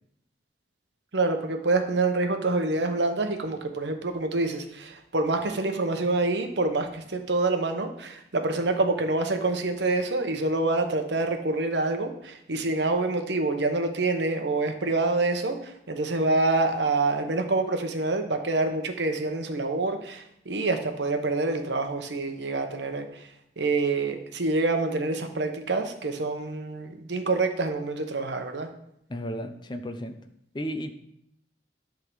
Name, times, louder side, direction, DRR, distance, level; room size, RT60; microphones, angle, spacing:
voice 1, 1.1-23.3 23.6-28.7, right 3 dB, 80° right, 6 dB, 1.0 m, -26 dB
voice 2, 29.1-30.2 30.5-30.9, equal, 25° left, 7 dB, 0.6 m, -33 dB
11.0 x 3.8 x 6.2 m, 0.75 s
head